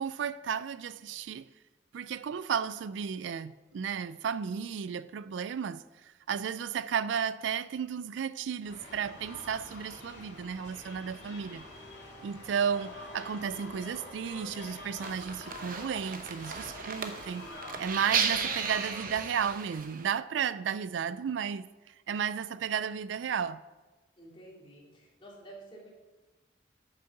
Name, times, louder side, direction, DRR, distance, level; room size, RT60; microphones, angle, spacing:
voice 1, 0.0-1.5 1.9-11.6 12.2-17.5 17.8-21.7 22.1-23.6, right 7 dB, 85° right, 0.4 m, -33 dB
sound 1, 8.6-19.0, left 2 dB, 65° left, 2.8 m, -46 dB
sound 2, 15.0-20.1, right 6 dB, 50° right, 0.8 m, -35 dB
voice 2, 24.2-25.9, right 1 dB, 30° left, 2.3 m, -50 dB
9.0 x 6.6 x 5.8 m
head